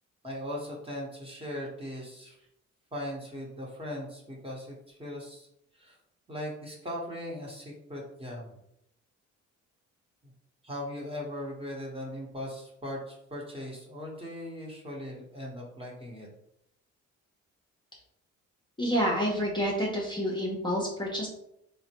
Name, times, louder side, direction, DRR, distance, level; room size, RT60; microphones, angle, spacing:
voice 1, 0.2-2.4 2.9-5.5 5.7-6.0 6.3-8.5 10.6-16.3, equal, 20° right, -2 dB, 1.1 m, -39 dB
voice 2, 18.8-21.3, equal, 15° left, -3 dB, 0.7 m, -28 dB
3.8 x 2.1 x 2.8 m, 0.79 s
cardioid pair, 90°, 30 cm